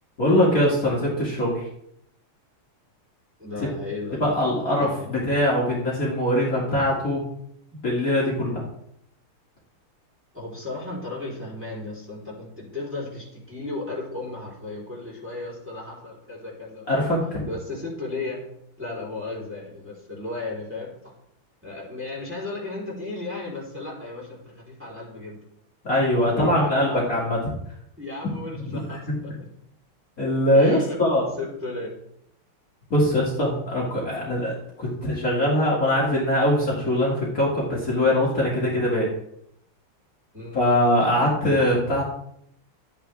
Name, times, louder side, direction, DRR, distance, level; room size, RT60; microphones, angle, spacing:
voice 1, 0.2-1.7 4.2-7.2 7.8-8.6 16.9-17.5 25.8-27.4 28.7-29.1 30.2-31.2 32.9-39.1 40.5-42.0, left 1 dB, 40° left, -5 dB, 2.5 m, -22 dB
voice 2, 3.4-4.2 4.7-5.1 10.3-16.9 17.5-18.4 18.8-21.1 21.6-25.4 26.3-27.0 28.0-29.3 30.5-31.0 31.4-31.9 40.3-40.6, left 2 dB, 5° right, -5 dB, 3.6 m, -35 dB
13.0 x 8.9 x 3.5 m, 0.74 s
omnidirectional pair, 2.3 m